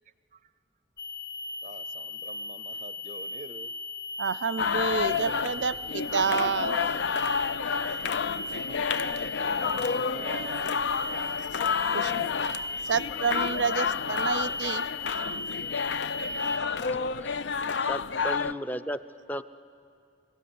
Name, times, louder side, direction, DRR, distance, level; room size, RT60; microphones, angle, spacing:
sound 1, 1.0-16.6, left 3 dB, 50° left, 1.4 m, -37 dB
voice 1, 1.6-3.7 8.5-11.4, right 3 dB, 40° right, 14 dB, 0.5 m, -46 dB
voice 2, 4.2-6.8 11.9-12.3 12.8-14.9, right 6 dB, 85° right, 17 dB, 0.6 m, -29 dB
sound 2, 4.6-18.5, left 5 dB, 80° left, 0.5 m, -30 dB
voice 3, 17.9-19.0 19.3-19.4, equal, 10° left, 11 dB, 0.5 m, -33 dB
26.0 x 17.0 x 9.5 m, 2.4 s
head